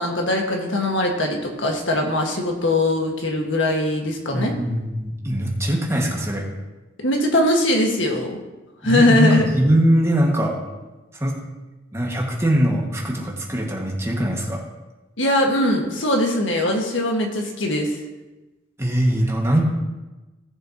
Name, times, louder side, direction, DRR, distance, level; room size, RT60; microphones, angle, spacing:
voice 1, 0.0-4.6 7.0-8.4 8.8-9.5 15.2-18.0, left 1 dB, 85° left, 1 dB, 1.7 m, -21 dB
voice 2, 4.3-6.4 8.8-10.5 11.1-11.3 11.9-14.6 18.8-19.6, right 1 dB, 15° right, -2 dB, 1.7 m, -21 dB
17.0 x 7.2 x 2.9 m, 1.1 s
head